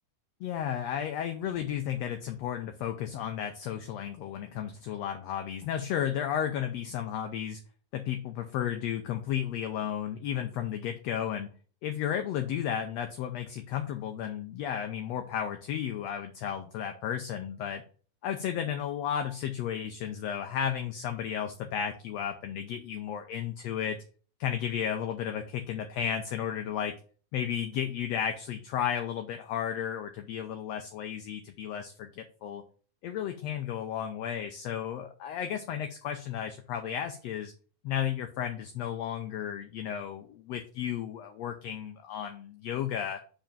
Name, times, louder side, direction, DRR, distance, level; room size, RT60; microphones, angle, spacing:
voice 1, 0.4-7.6 7.9-11.5 11.8-17.8 18.2-24.0 24.4-26.9 27.3-32.6 33.0-37.5 37.8-43.2, left 9 dB, 75° left, 6 dB, 1.6 m, -33 dB
5.1 x 5.1 x 5.2 m, 0.40 s
omnidirectional pair, 3.5 m